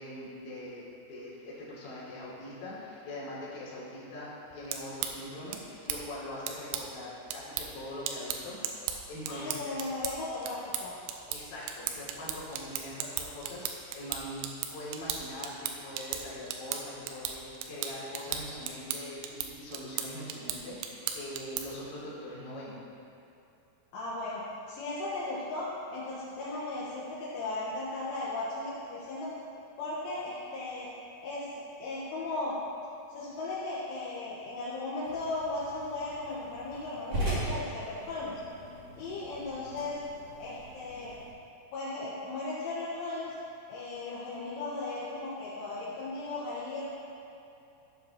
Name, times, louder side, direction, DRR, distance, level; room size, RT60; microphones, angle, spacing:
voice 1, 0.0-9.8 11.3-14.4 14.7-22.7, left 1 dB, 50° left, -8 dB, 4.2 m, -42 dB
sound 1, 4.5-21.9, right 9 dB, 85° right, 3.2 m, -38 dB
voice 2, 9.3-11.0 23.9-29.3 29.8-30.9 31.2-32.6 33.1-38.4 39.0-40.0 40.4-41.1 41.7-43.3 43.7-46.9, left 2 dB, 75° left, -8 dB, 3.6 m, -36 dB
sound 2, 35.0-41.3, right 1 dB, 40° right, 2.4 m, -39 dB
15.0 x 9.1 x 3.0 m, 2.8 s
omnidirectional pair, 5.9 m